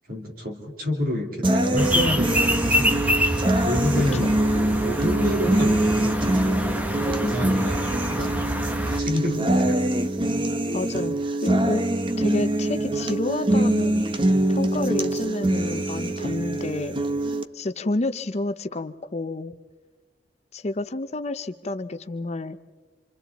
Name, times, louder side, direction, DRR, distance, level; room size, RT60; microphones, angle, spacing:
voice 1, 0.1-3.0 3.6-4.3 4.8-6.6 7.1-8.3 9.0-9.8, left 1 dB, 55° right, 1 dB, 3.5 m, -28 dB
sound 1, 1.4-17.4, right 1 dB, 30° right, 0.9 m, -24 dB
Birds and City Ambience, 1.8-9.0, equal, 10° right, 1.1 m, -26 dB
voice 2, 10.7-11.9 12.2-17.0 17.5-19.6 20.5-22.6, left 2 dB, 35° left, 10 dB, 0.7 m, -30 dB
27.0 x 27.0 x 4.1 m, 1.3 s
head